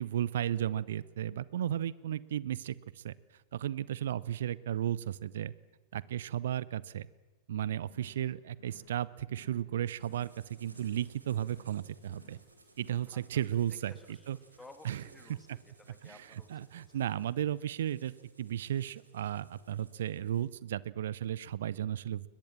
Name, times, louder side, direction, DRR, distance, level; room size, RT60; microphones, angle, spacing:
voice 1, 0.0-2.8 3.0-3.1 3.5-5.5 5.9-7.1 7.5-10.3 10.6-12.4 12.8-13.9 14.3-14.4 14.8-15.0 16.5-18.1 18.4-22.3, right 11 dB, 60° right, 21 dB, 0.7 m, -34 dB
sound 1, 7.8-8.3 8.5-8.9 9.2-9.7 9.9-10.4 10.6-11.1 11.3-11.7 12.0-12.5 12.7-13.1, left 2 dB, 70° left, 5.3 m, -59 dB
sound 2, 9.8-20.5, right 2 dB, 80° right, 3.4 m, -61 dB
voice 2, 13.1-17.1, left 2 dB, 10° left, 8 dB, 2.6 m, -57 dB
22.0 x 21.0 x 7.4 m, 1.2 s
figure-of-eight pair, 90°, 0 cm